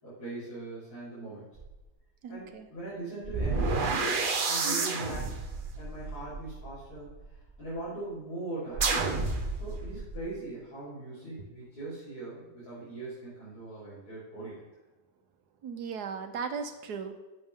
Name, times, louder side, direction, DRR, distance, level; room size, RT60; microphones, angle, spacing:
voice 1, 0.0-1.5 2.3-5.5 5.8-8.9 9.5-14.6, right 2 dB, 75° left, -14 dB, 4.6 m, -41 dB
sound 1, 1.6-1.7 3.2-7.3 8.7-10.2, right 4 dB, 40° right, 0.9 m, -30 dB
voice 2, 2.2-2.7 4.6-4.9 15.6-17.2, right 6 dB, 85° right, 7 dB, 1.5 m, -37 dB
10.5 x 8.0 x 3.7 m, 1.1 s
omnidirectional pair, 1.7 m